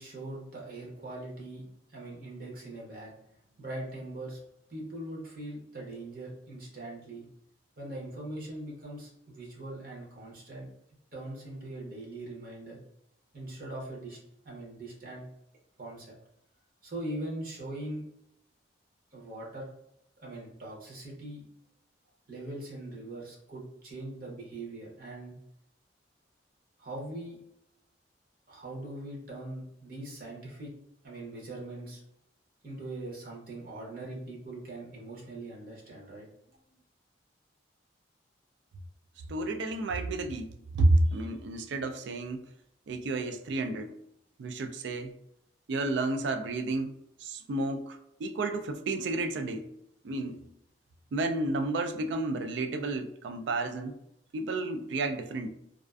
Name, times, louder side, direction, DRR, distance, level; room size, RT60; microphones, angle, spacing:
voice 1, 0.0-1.6 1.9-3.1 3.6-4.4 4.7-7.3 7.8-10.7 11.1-12.8 13.3-14.2 14.4-15.2 15.8-16.1 16.8-18.0 19.1-19.7 20.2-21.4 22.3-25.4 26.8-27.4 28.5-30.7 31.0-32.0 32.6-36.8, right 1 dB, 50° right, -4 dB, 0.7 m, -41 dB
voice 2, 39.3-42.4 42.9-43.9 44.4-45.1 45.7-49.7 50.0-50.4 51.1-54.0 54.3-55.5, right 2 dB, 70° right, 7 dB, 0.3 m, -31 dB
2.4 x 2.4 x 2.3 m, 0.78 s
head